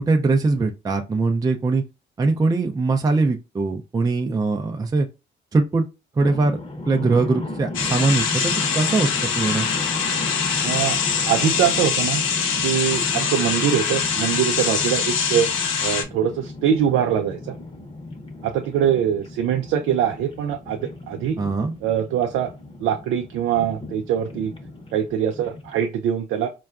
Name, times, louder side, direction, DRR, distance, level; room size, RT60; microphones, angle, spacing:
voice 1, 0.0-1.8 2.2-5.1 5.5-5.9 6.2-6.6 6.8-9.7 21.4-21.7, right 3 dB, 20° right, 0.4 m, -21 dB
sound 1, 6.2-25.9, left 2 dB, 30° left, 0.8 m, -35 dB
sound 2, 7.7-16.0, left 6 dB, 85° left, 0.7 m, -24 dB
voice 2, 10.6-11.0 11.2-12.2 12.6-15.5 15.8-17.5 18.4-20.8 21.1-21.4 21.8-22.5 22.8-24.5 24.9-26.5, right 9 dB, 85° right, 0.4 m, -23 dB
4.3 x 2.3 x 2.4 m
cardioid pair, 90°, 20 cm